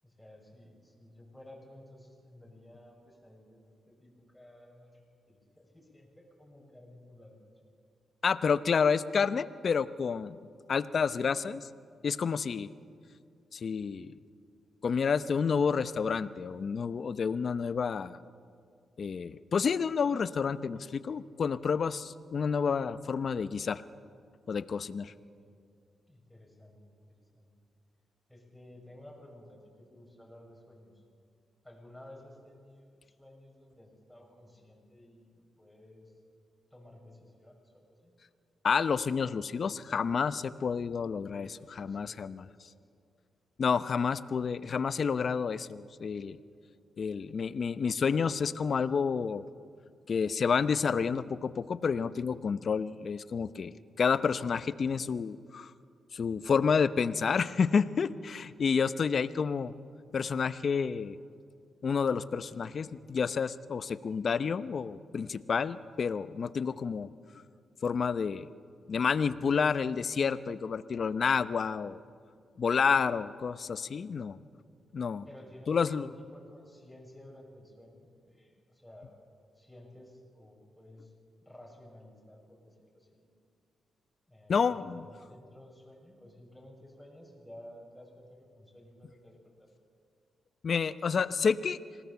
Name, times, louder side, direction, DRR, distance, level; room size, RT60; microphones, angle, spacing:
voice 1, 0.0-7.5 25.1-25.5 26.1-27.5 28.3-31.0 31.6-36.1 36.7-38.1 41.3-42.2 42.6-42.9 75.2-79.2 79.5-81.1 81.4-83.3 84.3-84.8 85.0-89.7, left 1 dB, 5° left, -2 dB, 6.7 m, -54 dB
voice 2, 8.2-10.4 10.7-11.7 12.0-12.7 13.5-14.1 14.8-18.2 19.0-23.8 24.5-25.1 38.6-42.5 43.6-46.4 47.0-49.4 50.1-55.7 56.1-59.7 60.1-61.2 61.8-67.1 67.8-68.5 68.9-72.0 72.6-74.4 74.9-75.3 75.7-76.1 84.5-85.1 90.6-91.8, left 6 dB, 55° left, 14 dB, 0.7 m, -29 dB
26.5 x 18.5 x 7.1 m, 2.3 s
cardioid pair, 75°, 0 cm